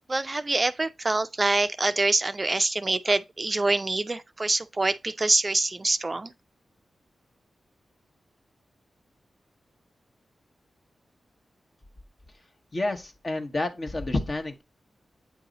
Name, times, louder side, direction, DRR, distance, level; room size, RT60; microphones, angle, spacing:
voice 1, 0.1-6.3, right 2 dB, 35° right, 0.4 m, -25 dB
voice 2, 12.7-14.6, left 2 dB, 45° left, 1.2 m, -29 dB
8.5 x 2.9 x 3.9 m
cardioid pair, 50°, 0 cm